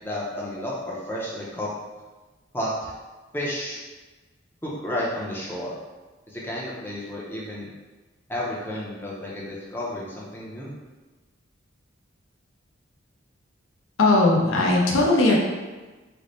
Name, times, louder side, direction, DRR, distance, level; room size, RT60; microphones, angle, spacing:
voice 1, 0.0-1.7 2.5-2.9 3.3-3.8 4.6-5.7 6.3-7.7 8.3-10.7, left 1 dB, 10° left, -6 dB, 0.5 m, -31 dB
voice 2, 14.0-15.4, left 2 dB, 85° left, -2 dB, 0.6 m, -18 dB
3.2 x 2.0 x 3.9 m, 1.2 s
head